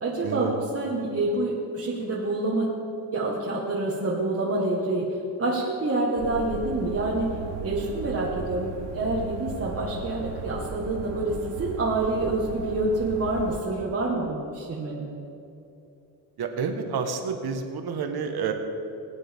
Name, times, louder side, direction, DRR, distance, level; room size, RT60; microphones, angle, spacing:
voice 1, 0.0-2.7 3.1-7.4 7.6-15.1, right 2 dB, 35° right, -5 dB, 1.6 m, -27 dB
sound 1, 6.2-13.6, right 6 dB, 85° right, 1.0 m, -37 dB
voice 2, 16.4-18.5, right 6 dB, 65° right, 5 dB, 1.4 m, -29 dB
20.0 x 9.0 x 3.6 m, 2.7 s
cardioid pair, 115°, 41 cm